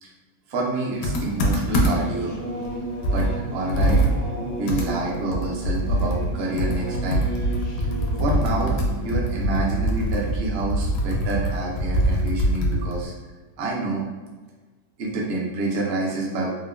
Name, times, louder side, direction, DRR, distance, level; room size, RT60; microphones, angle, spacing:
voice 1, 0.5-2.4 3.1-4.1 4.5-7.3 8.2-13.1 13.6-14.0 15.0-16.5, right 2 dB, 70° right, -2 dB, 0.6 m, -28 dB
Computer keyboard, 1.0-2.2 2.6-2.7 3.0-6.3 6.6-13.1, equal, 70° left, 0.9 m, -23 dB
Singing / Musical instrument, 1.4-11.5, right 1 dB, 50° left, 0.4 m, -34 dB
3.6 x 2.0 x 2.3 m, 1.3 s
omnidirectional pair, 1.7 m